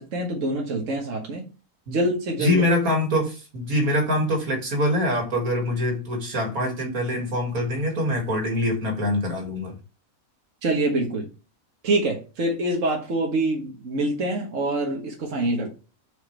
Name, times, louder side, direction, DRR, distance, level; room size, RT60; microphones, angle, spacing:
voice 1, 0.0-1.5 1.9-2.7 10.6-11.3 11.8-15.7, right 2 dB, 65° right, 0 dB, 1.8 m, -25 dB
voice 2, 2.4-9.7, left 1 dB, 85° right, 2 dB, 2.6 m, -24 dB
7.2 x 5.3 x 3.3 m, 0.32 s
omnidirectional pair, 1.5 m